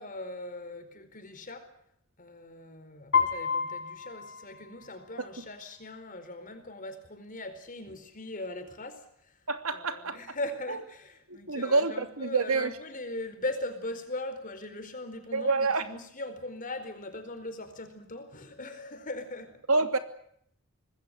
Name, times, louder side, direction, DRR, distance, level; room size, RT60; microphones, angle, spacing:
voice 1, 0.0-1.7 2.2-9.4 9.7-19.6, left 2 dB, 40° left, 4.5 m, -40 dB
Piano, 3.1-5.2, left 6 dB, 55° left, 4.7 m, -30 dB
voice 2, 9.5-10.2 10.7-10.8 11.3-12.7 15.3-15.9 19.7-20.0, right 3 dB, 85° right, 2.8 m, -27 dB
26.0 x 20.5 x 7.8 m
head